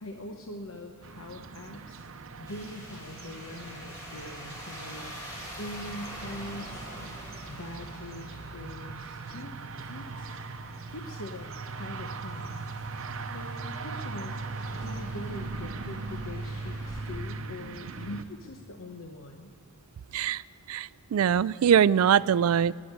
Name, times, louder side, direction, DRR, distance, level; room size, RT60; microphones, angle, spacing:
voice 1, 0.0-2.1 2.4-5.2 5.6-6.9 7.5-9.5 9.8-10.4 10.9-12.6 13.3-14.4 14.7-19.5, left 1 dB, 75° left, 3 dB, 1.0 m, -42 dB
sound 1, 1.0-18.2, right 3 dB, 65° right, 0.7 m, -40 dB
sound 2, 2.5-17.0, equal, 15° left, 4.8 m, -46 dB
voice 2, 20.7-22.7, right 8 dB, 85° right, 20 dB, 0.3 m, -22 dB
19.5 x 7.3 x 9.5 m, 2.4 s
head